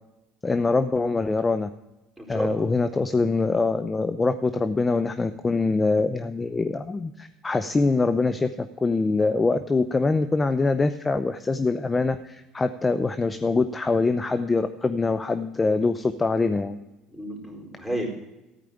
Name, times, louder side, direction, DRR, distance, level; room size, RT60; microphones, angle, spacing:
voice 1, 0.4-1.7 2.3-16.8, left 3 dB, 20° left, 10 dB, 0.6 m, -24 dB
voice 2, 2.2-2.6 17.1-18.1, equal, 5° right, -1 dB, 4.3 m, -31 dB
13.5 x 5.0 x 9.1 m, 1.0 s
hypercardioid pair, 75°, 0 cm